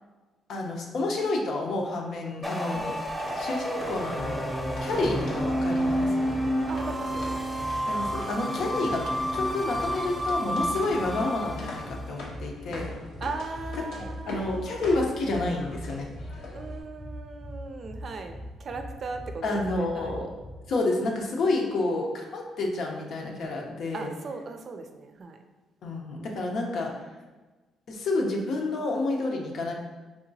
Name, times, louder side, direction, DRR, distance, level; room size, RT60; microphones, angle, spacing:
voice 1, 0.5-3.0 3.4-4.4 4.8-6.4 7.9-12.9 14.0-16.1 19.4-20.3 20.7-24.1 25.8-26.9 27.9-29.7, left 2 dB, 70° left, 1 dB, 0.8 m, -29 dB
sound 1, 2.4-12.1, equal, 5° right, 0.8 m, -30 dB
sound 2, 2.7-16.8, left 2 dB, 90° left, 0.9 m, -45 dB
sound 3, 4.2-20.6, left 1 dB, 25° left, 0.4 m, -42 dB
voice 2, 6.7-7.4 8.5-8.6 13.2-14.9 16.5-20.2 21.7-21.9 23.9-25.4, right 4 dB, 50° right, 6 dB, 0.4 m, -38 dB
4.8 x 2.9 x 2.7 m, 1.2 s
cardioid pair, 90°, 0 cm